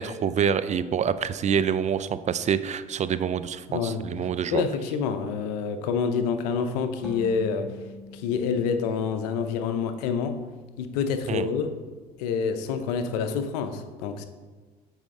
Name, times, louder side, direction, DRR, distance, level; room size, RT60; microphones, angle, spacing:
voice 1, 0.0-4.6 11.3-11.5, right 7 dB, 35° right, 14 dB, 0.4 m, -26 dB
voice 2, 3.7-4.0 4.5-7.7 8.1-10.4 10.8-11.7 12.2-14.3, left 6 dB, 80° left, 9 dB, 0.6 m, -27 dB
sound 1, 7.0-10.5, right 1 dB, ahead, 1.8 m, -44 dB
7.4 x 5.0 x 3.7 m, 1.4 s
hypercardioid pair, 65°, 20 cm